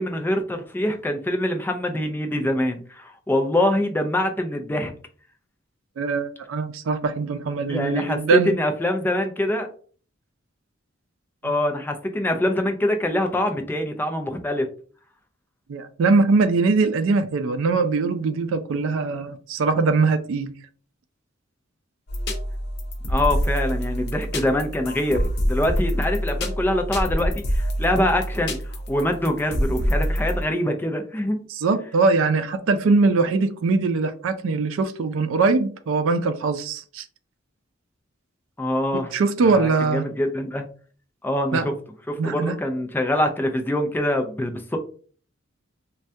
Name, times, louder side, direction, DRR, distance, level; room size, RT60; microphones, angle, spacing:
voice 1, 0.0-4.9 7.7-9.7 11.4-14.7 23.1-28.6 28.9-31.4 38.6-39.1 39.4-40.7 41.2-41.7 42.1-44.8, left 1 dB, 10° left, 0.3 m, -24 dB
voice 2, 6.0-8.6 15.7-20.5 31.5-37.0 38.9-40.0 41.5-41.7 42.2-42.6, right 4 dB, 80° right, 0.4 m, -22 dB
sound 1, 22.1-30.4, equal, 55° left, 0.6 m, -26 dB
3.3 x 2.2 x 2.6 m
head